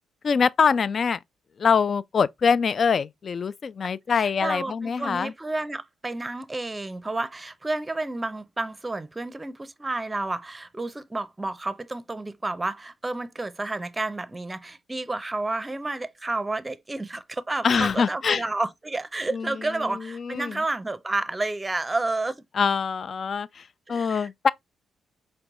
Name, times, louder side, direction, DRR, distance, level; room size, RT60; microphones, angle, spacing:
voice 1, 0.2-1.2 1.6-5.3 17.6-18.4 19.3-19.6 20.1-20.6 22.6-24.5, left 6 dB, 50° left, 0.3 m, -24 dB
voice 2, 4.1-22.3 23.9-24.3, right 2 dB, 20° right, 0.6 m, -30 dB
4.5 x 3.3 x 2.4 m
supercardioid pair, 65°, 0 cm